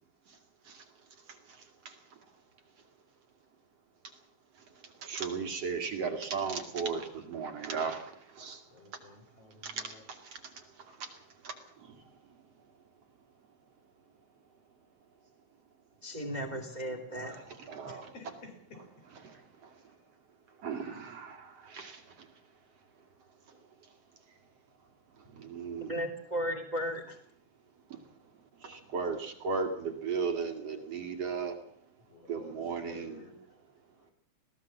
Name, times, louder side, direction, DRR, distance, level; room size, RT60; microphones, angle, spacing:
voice 1, 0.6-2.2 4.5-8.6 8.9-9.0 9.6-12.4 17.1-18.1 19.2-19.9 20.6-22.3 23.5-23.9 25.1-26.0 27.9-28.1 28.6-31.6 32.3-33.2, right 5 dB, 55° right, 6 dB, 3.2 m, -38 dB
voice 2, 8.7-10.0 17.8-19.1 20.7-20.9 32.0-33.4 34.0-34.1, left 3 dB, 55° left, 5 dB, 5.1 m, -53 dB
voice 3, 16.0-17.4 25.3-25.4 25.9-27.2, equal, 15° right, 7 dB, 2.5 m, -35 dB
21.0 x 17.0 x 7.3 m, 0.62 s
omnidirectional pair, 3.4 m